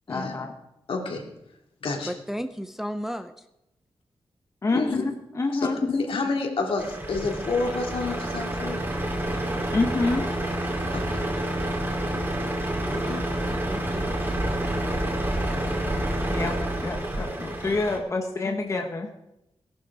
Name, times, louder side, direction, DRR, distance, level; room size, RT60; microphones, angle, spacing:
voice 1, 0.1-0.5 4.6-5.8 9.7-10.3 16.3-16.6 16.8-19.1, left 3 dB, 30° left, 3 dB, 1.1 m, -27 dB
voice 2, 0.9-1.2 1.8-2.1 4.7-5.0 5.5-8.8 10.9-11.2 12.8-13.3, left 3 dB, 65° left, 1 dB, 2.8 m, -29 dB
voice 3, 2.0-3.4 13.1-14.1, equal, 5° right, 8 dB, 0.5 m, -34 dB
Truck, 6.8-18.0, right 1 dB, 20° right, 2.2 m, -28 dB
18.0 x 11.5 x 4.8 m, 0.86 s
wide cardioid pair, 180°, 10 cm